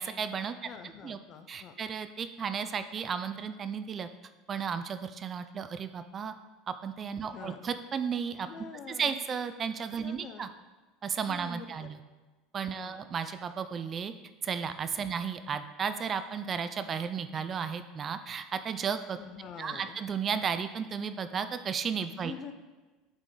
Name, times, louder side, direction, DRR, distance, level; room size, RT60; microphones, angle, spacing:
voice 1, 0.0-0.6 1.0-1.2 1.5-4.1 4.5-6.3 6.7-8.5 8.9-10.5 11.0-12.0 12.5-14.1 14.4-19.2 19.6-22.3, right 6 dB, 35° right, 10 dB, 0.4 m, -34 dB
voice 2, 0.6-1.8 7.3-7.6 8.4-9.2 10.0-10.5 11.3-11.9 12.7-13.0 15.0-15.1 19.2-20.0 22.2-22.5, left 6 dB, 45° left, 7 dB, 0.6 m, -46 dB
8.1 x 3.7 x 3.9 m, 1.2 s
hypercardioid pair, 90°, 0 cm